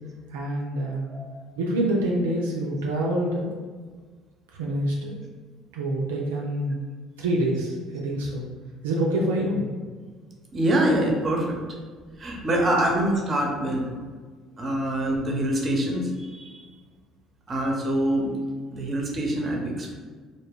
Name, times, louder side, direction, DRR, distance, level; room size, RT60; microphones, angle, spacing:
voice 1, 0.3-1.1 1.6-3.5 4.5-5.2 5.7-6.8 7.2-8.5 8.8-9.7, right 1 dB, 90° right, -2 dB, 0.3 m, -26 dB
voice 2, 10.5-11.6 12.2-13.9 14.6-16.6 17.5-18.3 18.7-20.0, right 1 dB, 35° right, -1 dB, 0.7 m, -25 dB
2.1 x 2.0 x 3.5 m, 1.5 s
hypercardioid pair, 65°, 0 cm